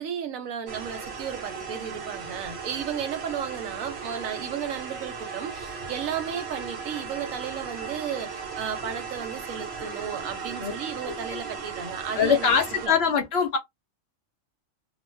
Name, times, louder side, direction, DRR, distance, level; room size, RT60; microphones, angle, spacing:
voice 1, 0.0-12.5 12.8-12.9, right 8 dB, 80° right, 1.1 m, -34 dB
sound 1, 0.7-12.9, right 5 dB, 55° right, 1.0 m, -37 dB
voice 2, 12.1-13.6, left 6 dB, 60° left, 0.7 m, -22 dB
2.4 x 2.2 x 3.1 m
omnidirectional pair, 1.4 m